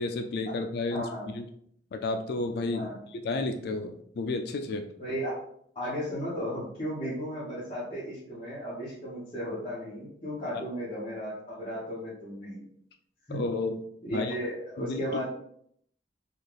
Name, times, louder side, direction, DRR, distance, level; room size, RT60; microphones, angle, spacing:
voice 1, 0.0-1.0 1.3-1.4 1.9-2.9 3.2-4.9 13.3-13.8 14.1-14.3 14.8-15.0, left 3 dB, 60° left, 5 dB, 0.3 m, -31 dB
voice 2, 0.9-1.3 2.7-3.0 5.0-5.4 5.7-12.6 13.3-13.4 14.0-15.3, equal, 30° left, -11 dB, 1.1 m, -35 dB
4.0 x 2.4 x 3.3 m, 0.68 s
head